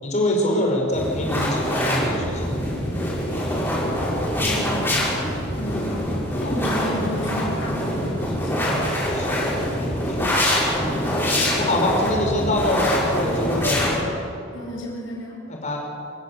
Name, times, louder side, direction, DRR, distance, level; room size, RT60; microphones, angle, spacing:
voice 1, 0.0-2.4 6.5-6.6 9.1-9.6 9.9-10.7 11.2-13.9 15.5-15.8, left 1 dB, 35° left, 0 dB, 5.2 m, -25 dB
sound 1, 0.9-14.0, equal, 10° left, 6.7 m, -24 dB
voice 2, 4.4-4.8 5.6-6.1 6.4-8.7 14.5-15.4, equal, 65° left, -1 dB, 7.6 m, -32 dB
27.5 x 16.0 x 8.2 m, 2.5 s
head